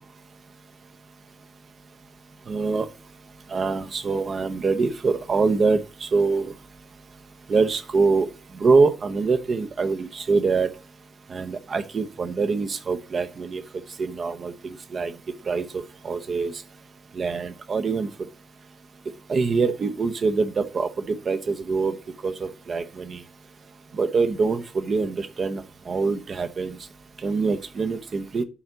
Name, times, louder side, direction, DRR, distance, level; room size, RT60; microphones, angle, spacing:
voice 1, 2.5-2.9 3.5-6.5 7.5-8.3 8.6-10.7 11.3-13.6 14.0-15.1 15.5-16.5 17.2-18.1 19.3-21.9 22.2-23.2 23.9-26.8 27.2-28.4, right 4 dB, 45° right, 9 dB, 1.0 m, -24 dB
11.5 x 4.4 x 2.8 m, 0.32 s
figure-of-eight pair, 40°, 0 cm